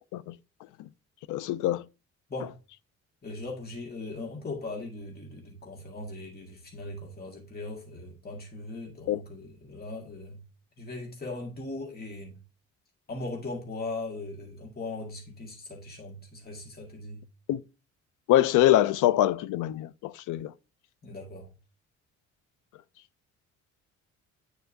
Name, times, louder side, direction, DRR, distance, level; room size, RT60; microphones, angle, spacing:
voice 1, 1.3-1.8 9.1-9.2 17.5-17.6 18.3-20.5, left 13 dB, 85° left, 0.5 m, -24 dB
voice 2, 3.2-10.4 10.8-12.4 13.1-17.2 21.0-21.5, left 2 dB, 30° left, 2.0 m, -39 dB
9.2 x 4.4 x 2.7 m
cardioid pair, 90°, 30 cm